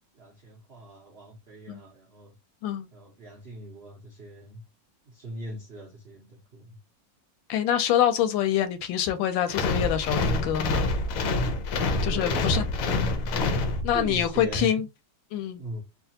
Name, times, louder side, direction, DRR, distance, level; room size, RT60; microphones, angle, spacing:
voice 1, 0.1-2.4 2.9-4.6 5.1-6.8 12.1-12.8 13.9-14.8 15.6-15.8, right 1 dB, 75° right, 0.5 m, -40 dB
voice 2, 7.5-10.9 12.0-12.6 13.8-14.9 15.3-15.6, left 10 dB, 90° left, 1.3 m, -25 dB
sound 1, 9.5-14.2, left 2 dB, 70° left, 0.8 m, -26 dB
3.2 x 2.3 x 2.7 m
omnidirectional pair, 2.0 m